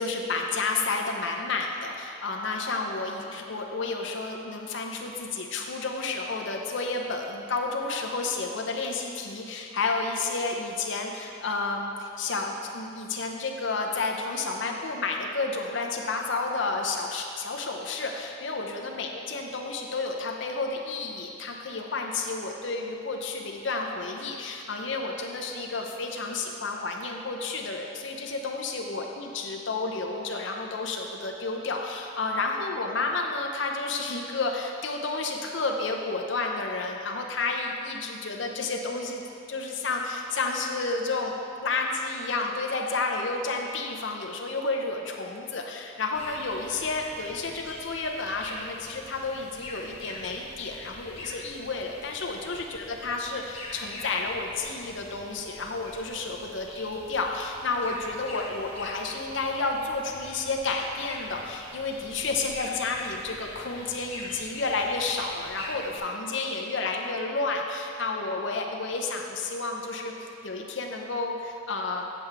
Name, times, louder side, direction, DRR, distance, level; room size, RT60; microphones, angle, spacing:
voice 1, 0.0-39.2 39.5-72.0, left 3 dB, 65° left, 1 dB, 0.8 m, -31 dB
sound 1, 46.1-66.0, left 1 dB, 30° left, 1.3 m, -44 dB
8.1 x 7.7 x 3.5 m, 2.5 s
head